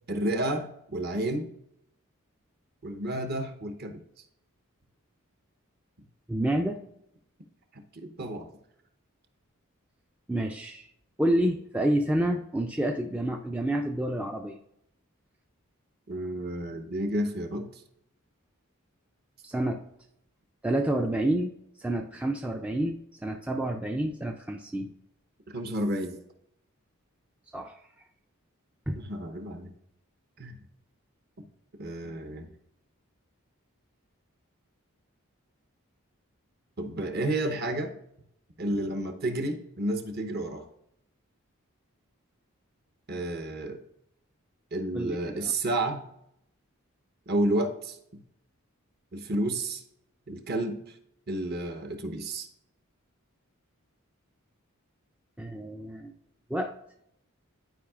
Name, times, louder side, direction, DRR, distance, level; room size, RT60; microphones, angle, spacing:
voice 1, 0.1-1.5 2.8-4.0 7.7-8.5 16.1-17.7 25.5-26.2 28.9-29.7 30.4-30.6 31.8-32.5 36.8-37.9 38.6-40.6 43.1-43.8 44.7-46.0 47.3-48.2 49.1-49.8 50.3-50.8 51.3-52.5, right 1 dB, 45° right, 5 dB, 0.8 m, -31 dB
voice 2, 6.3-6.8 10.3-10.9 11.2-14.6 19.4-19.8 20.6-21.5 21.8-24.9 27.5-27.7 28.9-29.0 44.9-45.5 55.4-56.1 56.5-56.7, right 1 dB, 5° right, 2 dB, 0.3 m, -29 dB
11.5 x 4.8 x 2.4 m, 0.76 s
head